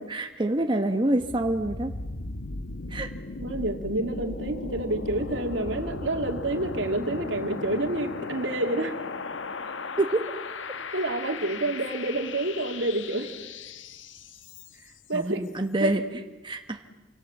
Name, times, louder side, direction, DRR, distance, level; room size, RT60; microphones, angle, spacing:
voice 1, 0.0-1.9 2.9-3.1 10.0-10.2 15.1-16.0 16.4-16.8, right 1 dB, 25° right, 4 dB, 1.2 m, -26 dB
sound 1, 1.2-15.0, left 3 dB, 75° left, 1.1 m, -37 dB
voice 2, 3.4-9.0 10.9-13.3 15.1-15.5 15.8-16.0, right 2 dB, 70° right, 4 dB, 2.8 m, -28 dB
29.0 x 26.0 x 7.4 m, 1.2 s
head